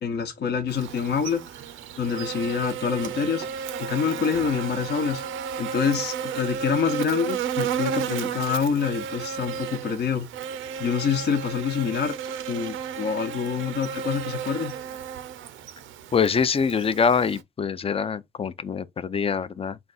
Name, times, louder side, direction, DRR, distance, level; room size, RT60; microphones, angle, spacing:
voice 1, 0.0-1.4 2.0-5.2 5.6-10.3 10.8-12.1 12.5-14.8, left 6 dB, 60° left, 0.9 m, -26 dB
Buzz, 0.7-17.4, right 8 dB, 85° right, 0.6 m, -33 dB
voice 2, 16.1-19.8, left 6 dB, 30° left, 0.5 m, -24 dB
4.0 x 2.3 x 3.9 m
cardioid pair, 90°, 20 cm